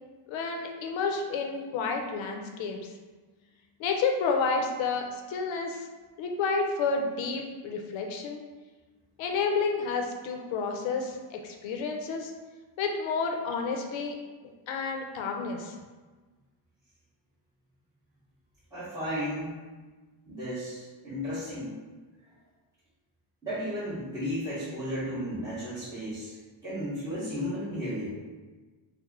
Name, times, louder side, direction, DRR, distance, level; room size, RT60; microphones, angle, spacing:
voice 1, 0.3-2.8 3.8-5.9 6.2-8.4 9.2-12.3 12.8-14.2 14.7-15.8, left 4 dB, 70° left, 3 dB, 0.5 m, -30 dB
voice 2, 18.7-19.5 20.2-21.7 23.4-28.1, equal, 10° right, -13 dB, 1.0 m, -34 dB
3.0 x 2.0 x 3.6 m, 1.3 s
cardioid pair, 135°, 49 cm